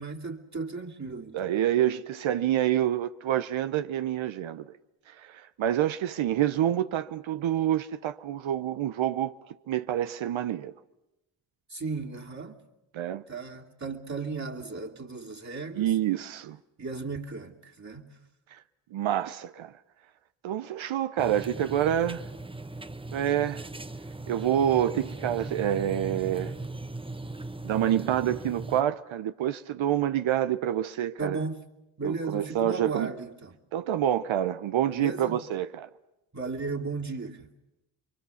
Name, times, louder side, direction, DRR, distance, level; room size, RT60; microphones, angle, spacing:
voice 1, 0.0-1.5 11.7-12.6 13.3-15.9 16.8-18.2 31.2-31.6 32.0-33.6 34.9-35.4 36.3-37.5, right 4 dB, 35° right, 2.8 m, -35 dB
voice 2, 1.3-4.7 5.1-9.4 9.7-10.7 12.9-13.2 15.8-16.6 18.5-18.6 18.9-19.7 20.4-22.2 23.1-23.7 24.3-26.5 27.6-31.4 32.0-33.1 33.7-35.9, right 11 dB, 70° right, 0.8 m, -27 dB
sound 1, 21.2-28.8, right 2 dB, 10° right, 1.0 m, -38 dB
29.0 x 23.0 x 7.1 m
supercardioid pair, 40°, 48 cm